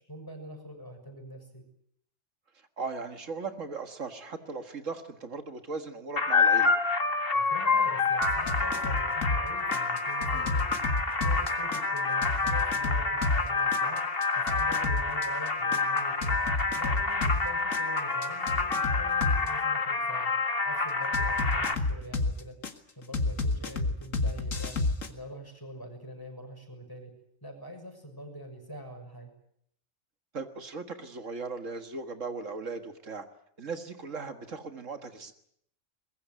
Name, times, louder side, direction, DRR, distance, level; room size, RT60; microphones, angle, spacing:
voice 1, 0.1-1.6 7.3-10.9 11.2-16.4 16.7-20.3 20.6-22.6 22.9-24.8 25.1-27.1 27.4-29.3, equal, 15° left, 4 dB, 6.5 m, -44 dB
voice 2, 2.8-6.8 10.3-10.5 30.3-33.3 33.6-35.3, right 4 dB, 75° right, 8 dB, 2.0 m, -38 dB
sound 1, 6.2-21.7, left 4 dB, 45° left, 2.1 m, -28 dB
sound 2, 8.2-9.4 9.7-13.4 13.7-17.4 17.7-19.5 21.1-22.7 23.1-25.1, left 3 dB, 85° left, 2.3 m, -29 dB
23.0 x 21.0 x 9.3 m, 0.71 s
omnidirectional pair, 1.3 m